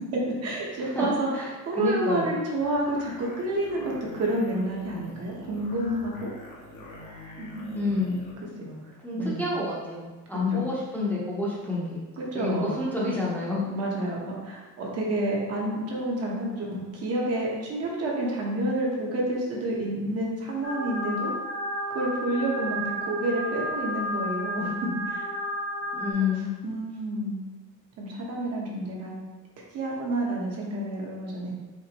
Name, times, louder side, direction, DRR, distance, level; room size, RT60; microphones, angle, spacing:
voice 1, 0.1-6.3 7.4-8.0 8.6-8.7 9.2-9.5 10.3-10.6 12.2-12.8 13.6-21.3 21.9-25.3 26.2-26.3 26.6-27.4 28.0-29.2 29.7-31.5, right 1 dB, 50° right, -3 dB, 1.1 m, -29 dB
voice 2, 1.3-2.3 7.7-8.2 9.0-12.0 12.3-13.6 25.9-26.5, left 3 dB, 5° left, -8 dB, 0.7 m, -29 dB
sound 1, 2.6-8.4, left 1 dB, 80° left, 1.1 m, -45 dB
sound 2, 20.6-26.1, equal, 35° left, 0.9 m, -32 dB
5.0 x 3.3 x 3.0 m, 1.2 s
cardioid pair, 165°, 31 cm